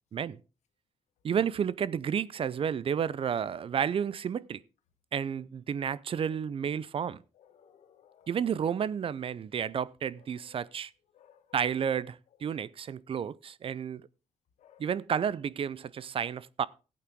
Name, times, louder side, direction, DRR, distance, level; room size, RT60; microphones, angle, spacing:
voice 1, 1.2-4.6 5.1-7.2 8.3-10.9 11.5-14.1 14.8-16.7, right 8 dB, 50° right, 0.5 m, -31 dB
voice 2, 7.1-8.3 11.1-11.6 12.5-12.6 14.6-14.8, left 9 dB, 85° left, 1.4 m, -59 dB
16.0 x 8.6 x 3.6 m
cardioid pair, 80°, 12 cm